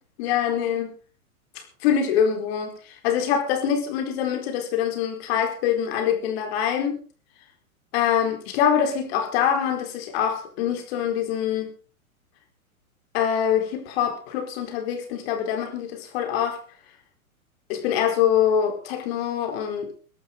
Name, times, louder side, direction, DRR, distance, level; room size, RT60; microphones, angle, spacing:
voice 1, 0.2-0.9 1.8-7.0 7.9-11.7 13.1-16.6 17.7-19.9, left 8 dB, 45° left, 4 dB, 4.5 m, -24 dB
22.5 x 12.0 x 4.0 m, 0.39 s
figure-of-eight pair, 110°, 43 cm